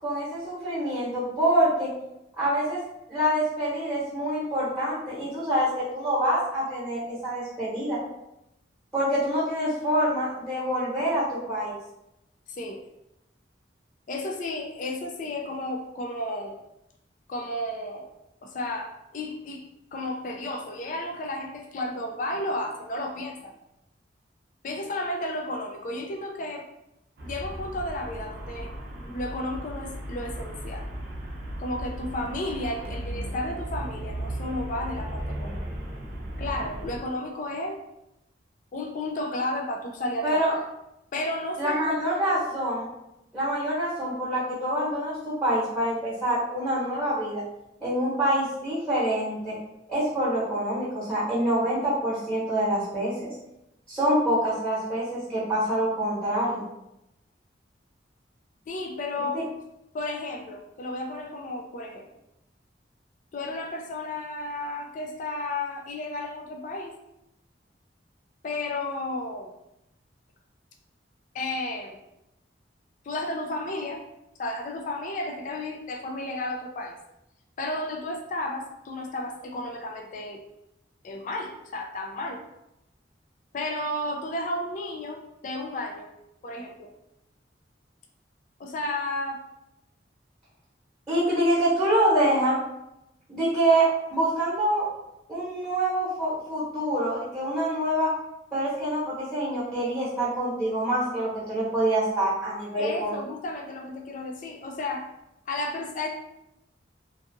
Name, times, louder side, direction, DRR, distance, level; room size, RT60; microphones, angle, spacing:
voice 1, 0.0-1.9 2.4-2.8 3.1-8.0 8.9-11.7 40.2-40.5 41.6-42.9 43.3-47.4 47.8-49.6 49.9-53.1 53.9-56.6 91.1-92.6 93.3-94.9 95.3-98.1 98.5-103.1, right 1 dB, 5° right, -11 dB, 0.9 m, -26 dB
voice 2, 12.5-12.8 14.1-16.6 17.3-18.1 18.4-19.6 19.9-23.5 24.6-26.6 27.2-28.7 29.0-30.9 31.6-35.6 36.4-37.8 38.7-40.4 41.1-42.4 58.7-59.4 59.9-62.0 63.3-66.9 68.4-69.5 71.3-72.0 73.0-74.0 74.4-76.9 77.6-80.4 81.0-82.4 83.5-86.1 86.4-86.9 88.6-89.4 102.8-105.1 105.5-106.1, left 1 dB, 45° left, 2 dB, 0.3 m, -33 dB
Traffic noise roadway noise, 27.2-37.0, right 1 dB, 55° right, 0.5 m, -36 dB
2.6 x 2.3 x 2.5 m, 0.87 s
head